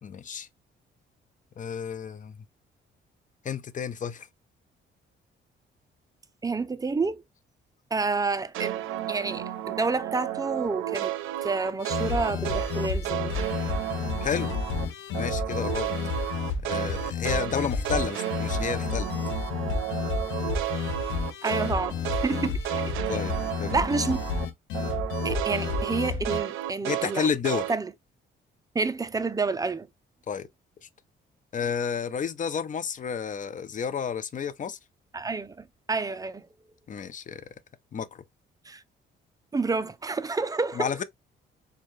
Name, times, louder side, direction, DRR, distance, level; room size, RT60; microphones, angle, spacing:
voice 1, 0.0-0.5 1.6-2.4 3.4-4.3 14.2-14.6 15.2-15.9 16.6-19.1 23.1-23.3 23.6-23.8 26.8-27.7 30.3-30.5 30.8-30.9 31.5-34.8 36.9-37.5 37.9-38.2 40.7-41.0, left 7 dB, 40° left, 0.6 m, -31 dB
voice 2, 6.4-7.2 7.9-8.8 9.1-11.1 11.4-13.4 21.4-22.8 23.7-24.2 25.2-27.3 27.7-27.9 28.7-29.9 35.1-36.5 38.7-38.8 39.5-40.9, right 4 dB, 20° right, 0.5 m, -29 dB
sound 1, 8.5-14.9 15.1-24.5 24.7-27.8, right 13 dB, 85° right, 0.5 m, -32 dB
sound 2, 11.8-26.4, left 6 dB, 85° left, 0.9 m, -31 dB
4.5 x 2.3 x 3.1 m
cardioid pair, 90°, 20 cm